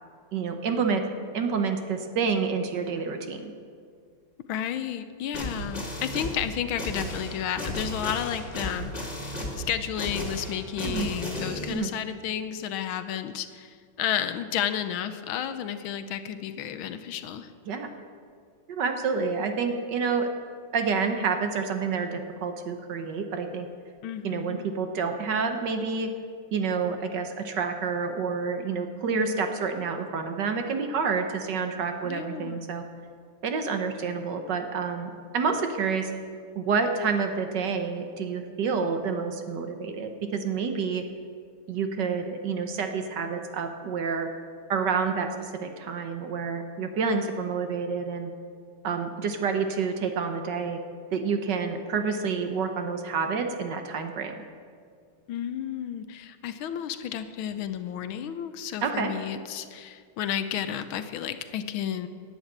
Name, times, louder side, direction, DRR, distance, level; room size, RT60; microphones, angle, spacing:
voice 1, 0.3-1.0 1.3-3.5 10.8-11.1 11.7-11.9 17.7-17.9 18.7-20.3 20.7-23.7 24.2-26.1 26.5-32.8 33.4-36.1 36.6-41.0 41.7-44.3 44.7-48.3 48.8-50.8 51.1-54.4 58.8-59.1, right 5 dB, 60° right, 6 dB, 1.4 m, -28 dB
voice 2, 4.5-8.9 9.2-9.3 9.7-17.5 24.0-24.7 32.0-32.6 55.3-62.1, left 9 dB, 75° left, 10 dB, 1.4 m, -32 dB
sound 1, 5.3-11.7, equal, 20° left, 2.2 m, -34 dB
11.5 x 9.0 x 8.7 m, 2.1 s
omnidirectional pair, 2.4 m